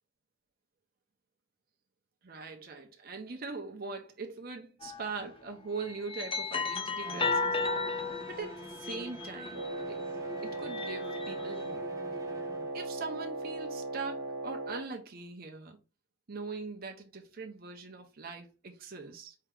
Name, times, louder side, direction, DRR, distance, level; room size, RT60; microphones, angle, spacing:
voice 1, 2.2-7.6 7.9-10.0 10.4-11.8 12.7-15.8 16.3-19.3, right 4 dB, 50° right, 0.7 m, -41 dB
sound 1, 4.8-5.1 5.8-9.9 10.5-11.6, left 4 dB, 30° left, 0.6 m, -34 dB
Bowed string instrument, 7.0-12.8, right 1 dB, 20° right, 0.8 m, -47 dB
Wind instrument woodwind instrument, 9.5-14.9, right 2 dB, 75° right, 1.2 m, -38 dB
4.6 x 2.9 x 3.6 m
head